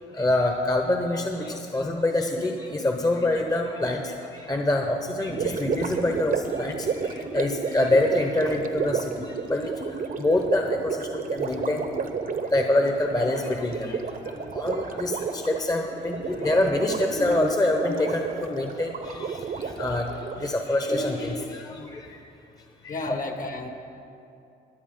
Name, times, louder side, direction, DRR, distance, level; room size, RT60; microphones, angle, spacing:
voice 1, 0.1-9.7 10.2-20.1 20.4-22.1 22.8-23.0, left 2 dB, 20° left, 3 dB, 1.0 m, -26 dB
Gurgling, 5.3-20.6, right 5 dB, 45° right, 0.9 m, -31 dB
voice 2, 22.9-23.7, left 2 dB, 45° left, 5 dB, 1.4 m, -32 dB
21.5 x 8.3 x 3.9 m, 2.6 s
cardioid pair, 90°, 20 cm